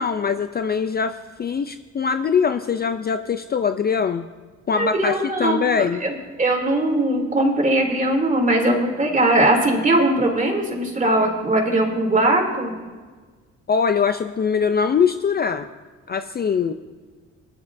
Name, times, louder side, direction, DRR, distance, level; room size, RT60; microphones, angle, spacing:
voice 1, 0.0-4.3 4.7-6.0 13.7-15.7 16.1-16.7, left 6 dB, 35° left, 9 dB, 0.5 m, -22 dB
voice 2, 4.8-12.7, right 1 dB, 25° right, 1 dB, 2.9 m, -20 dB
20.0 x 10.5 x 2.7 m, 1.4 s
cardioid pair, 90°, 30 cm